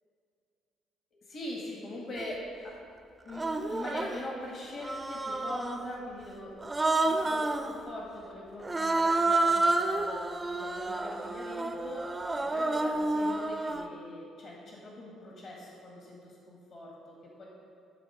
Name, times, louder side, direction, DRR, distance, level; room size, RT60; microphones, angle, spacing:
voice 1, 1.1-2.4 2.6-2.7 3.2-6.7 7.0-17.5, left 1 dB, 45° left, -2 dB, 1.8 m, -42 dB
Human voice, 2.2-2.3 3.3-4.2 4.8-5.9 6.6-7.7 8.6-13.9, right 2 dB, 20° right, 0.6 m, -29 dB
12.0 x 4.2 x 6.4 m, 2.5 s
figure-of-eight pair, 45°, 0 cm